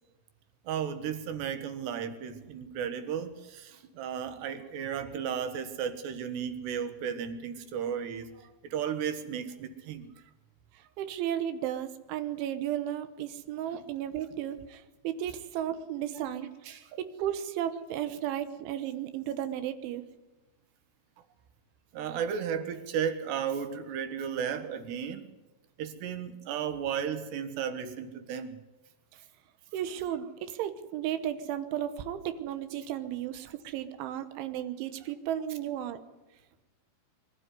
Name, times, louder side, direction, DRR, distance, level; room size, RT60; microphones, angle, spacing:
voice 1, 0.7-8.3 8.6-10.1 16.7-16.8 21.9-25.3 25.8-28.6, right 8 dB, 70° right, 9 dB, 3.4 m, -34 dB
voice 2, 10.8-16.5 16.9-20.0 29.7-36.0, right 11 dB, 85° right, 11 dB, 3.5 m, -34 dB
23.5 x 12.5 x 9.6 m, 1.1 s
omnidirectional pair, 5.3 m